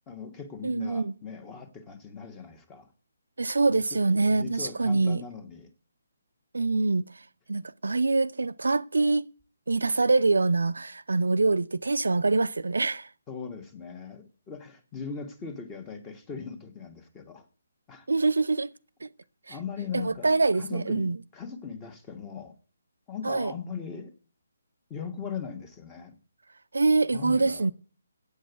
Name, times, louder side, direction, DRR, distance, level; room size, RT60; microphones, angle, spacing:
voice 1, 0.1-2.9 3.9-4.0 4.3-5.7 13.3-17.5 17.9-18.1 19.5-20.3 20.6-22.5 23.1-24.1 24.9-26.2 27.1-27.7, left 6 dB, 15° left, 1.3 m, -39 dB
voice 2, 0.6-1.1 3.4-5.2 6.5-7.1 7.5-9.3 9.7-13.1 18.1-18.7 19.0-19.1 19.5-19.6 19.9-21.2 23.2-23.5 26.7-27.7, right 3 dB, 80° right, 0.4 m, -25 dB
8.1 x 6.3 x 8.0 m
figure-of-eight pair, 145°, 0 cm